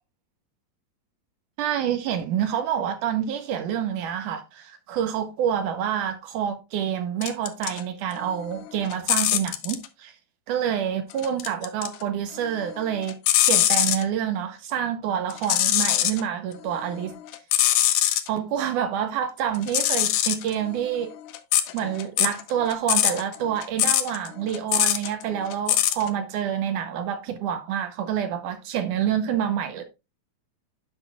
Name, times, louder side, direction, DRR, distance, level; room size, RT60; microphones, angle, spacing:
voice 1, 1.6-10.1 10.5-13.2 13.5-17.2 18.3-21.1 21.7-29.8, right 9 dB, 75° right, 2.1 m, -27 dB
sound 1, 7.2-7.8 8.2-9.9 11.1-12.0 12.4-14.0 15.3-16.2 16.7-18.3 19.6-26.1, left 13 dB, 80° left, 2.3 m, -23 dB
10.0 x 6.2 x 2.3 m
omnidirectional pair, 4.0 m